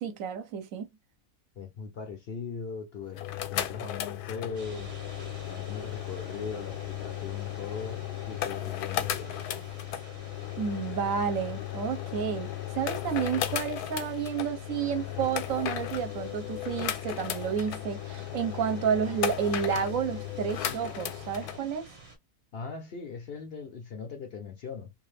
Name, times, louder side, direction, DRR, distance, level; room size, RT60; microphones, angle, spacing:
voice 1, 0.0-0.9 10.6-12.5 12.7-21.9, right 7 dB, 65° right, 1.0 m, -30 dB
voice 2, 1.6-3.2 3.5-4.9 5.5-9.6 22.5-24.9, left 5 dB, 60° left, 0.6 m, -40 dB
sound 1, 3.1-21.6, left 12 dB, 80° left, 1.1 m, -35 dB
sound 2, 4.5-22.2, right 3 dB, 40° right, 1.0 m, -50 dB
2.7 x 2.4 x 3.2 m
omnidirectional pair, 1.6 m